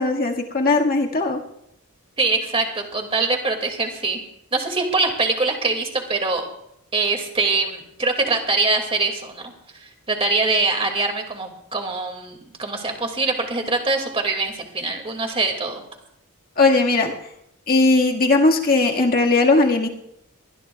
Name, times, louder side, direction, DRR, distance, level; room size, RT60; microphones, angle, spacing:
voice 1, 0.0-1.4 16.6-17.1 17.7-19.9, left 3 dB, 40° left, 1 dB, 1.8 m, -18 dB
voice 2, 2.2-4.2 4.5-6.4 6.9-9.5 9.8-15.8, right 3 dB, 25° right, 4 dB, 2.3 m, -23 dB
22.5 x 19.5 x 2.4 m, 0.78 s
head